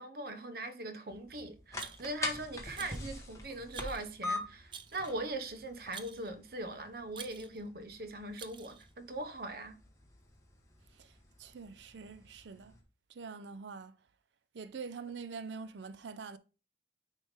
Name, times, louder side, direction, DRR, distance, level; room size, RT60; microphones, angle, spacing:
voice 1, 0.0-9.8, right 2 dB, 55° right, 0.9 m, -41 dB
sound 1, 1.1-12.8, left 2 dB, 20° left, 1.1 m, -45 dB
Rattle, 1.8-2.3 2.7-3.1 3.7-4.1 4.7-5.2 5.9-6.3 7.1-7.6 8.4-8.9, right 7 dB, 30° right, 0.4 m, -49 dB
voice 2, 11.4-12.7 13.2-13.9 14.5-16.4, right 5 dB, 85° right, 0.5 m, -44 dB
9.5 x 3.3 x 3.5 m
head